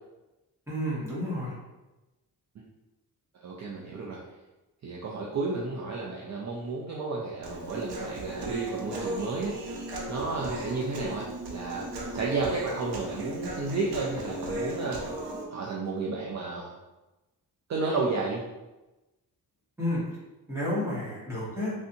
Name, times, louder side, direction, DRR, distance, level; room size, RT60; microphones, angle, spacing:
voice 1, 0.7-1.5 19.8-20.0 20.5-21.7, left 1 dB, 5° right, -8 dB, 1.2 m, -30 dB
voice 2, 3.4-4.2 4.8-9.6 10.1-15.0 15.5-16.7 17.7-18.4, right 3 dB, 45° right, -3 dB, 0.4 m, -32 dB
Human voice, 7.4-15.4, right 1 dB, 80° right, 0.7 m, -36 dB
3.3 x 2.7 x 2.6 m, 1.1 s
wide cardioid pair, 140°, 39 cm